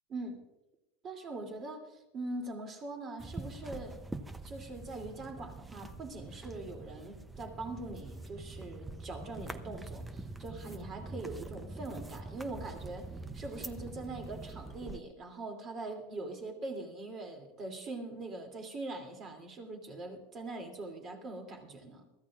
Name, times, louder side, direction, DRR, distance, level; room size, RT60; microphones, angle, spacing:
voice 1, 0.1-0.4 1.0-4.0 4.4-22.0, right 2 dB, 30° right, 4 dB, 2.9 m, -42 dB
sound 1, 3.2-15.0, right 2 dB, 10° right, 0.7 m, -45 dB
22.5 x 14.5 x 2.5 m, 0.95 s
supercardioid pair, 150°, 0 cm